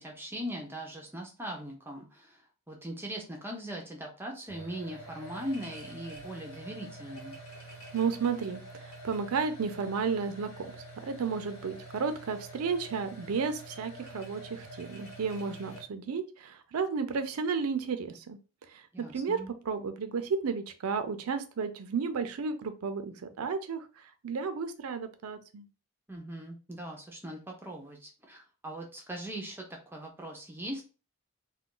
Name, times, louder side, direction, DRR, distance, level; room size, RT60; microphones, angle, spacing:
voice 1, 0.0-2.4 2.7-7.4 18.9-19.5 26.1-30.8, right 1 dB, 10° right, 1 dB, 0.5 m, -40 dB
sound 1, 4.5-15.8, right 1 dB, 75° left, 1.4 m, -47 dB
voice 2, 7.9-8.6 9.0-10.7 11.1-18.4 18.7-19.4 19.7-23.9 24.2-25.7, right 5 dB, 80° right, 9 dB, 0.4 m, -32 dB
2.4 x 2.2 x 3.7 m, 0.33 s
head